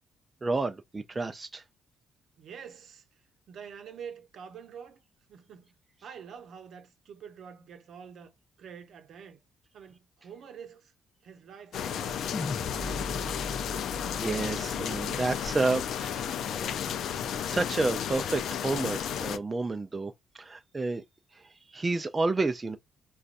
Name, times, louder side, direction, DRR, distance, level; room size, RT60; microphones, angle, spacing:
voice 1, 0.4-1.6 14.2-16.8 17.4-21.0 21.3-22.8, right 3 dB, 25° right, 0.4 m, -30 dB
voice 2, 2.4-3.0 3.5-5.0 5.3-5.7 6.0-8.3 8.6-9.4 9.7-10.9 11.2-13.0, right 7 dB, 65° right, 0.7 m, -47 dB
sound 1, 11.7-19.4, left 8 dB, 75° left, 0.4 m, -33 dB
sound 2, 12.3-16.7, left 2 dB, 30° left, 0.7 m, -39 dB
3.9 x 2.3 x 2.5 m
cardioid pair, 90°, 0 cm